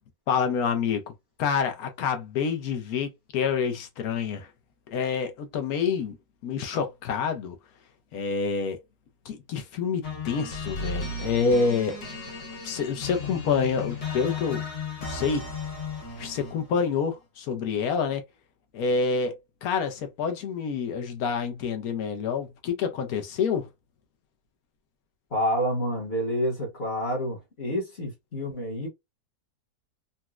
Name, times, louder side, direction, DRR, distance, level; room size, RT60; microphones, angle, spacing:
voice 1, 0.3-1.1 1.4-4.5 4.9-6.2 6.4-7.6 8.1-8.8 9.3-12.0 12.6-14.6 15.1-15.5 16.2-18.2 18.7-23.7, left 5 dB, 65° left, 1.0 m, -27 dB
sound 1, 10.0-16.7, left 4 dB, 80° left, 1.7 m, -35 dB
voice 2, 25.3-28.9, equal, 40° left, 1.2 m, -28 dB
4.0 x 2.2 x 2.3 m
omnidirectional pair, 1.8 m